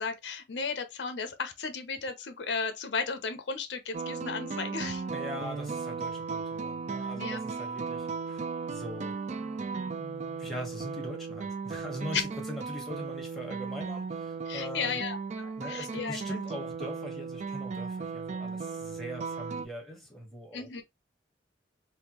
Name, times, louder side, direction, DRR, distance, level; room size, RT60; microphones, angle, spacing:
voice 1, 0.0-5.0 7.2-7.4 14.5-16.2 20.5-20.8, left 5 dB, 80° left, 0.6 m, -35 dB
sound 1, 3.9-19.7, right 5 dB, 40° right, 0.4 m, -36 dB
voice 2, 5.1-15.0 15.6-20.7, equal, ahead, 1.2 m, -42 dB
3.5 x 2.2 x 2.9 m
head